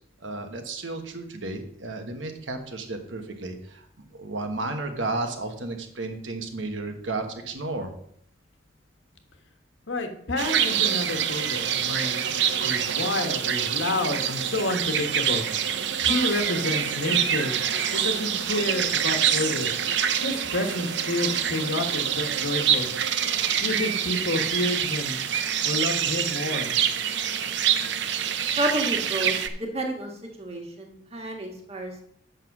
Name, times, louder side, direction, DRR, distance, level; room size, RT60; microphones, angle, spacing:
voice 1, 0.2-3.9 4.1-7.9, right 2 dB, 85° right, 5 dB, 1.4 m, -33 dB
voice 2, 9.9-15.4 16.0-17.5 17.9-19.7 20.2-22.9 23.6-25.2 25.6-26.7, left 2 dB, 80° left, 5 dB, 1.4 m, -29 dB
sound 1, 10.4-29.5, right 8 dB, 65° right, 0.7 m, -26 dB
voice 3, 28.6-30.1 30.4-32.0, right 1 dB, 35° right, 1 dB, 1.7 m, -30 dB
7.8 x 5.8 x 6.0 m, 0.69 s
head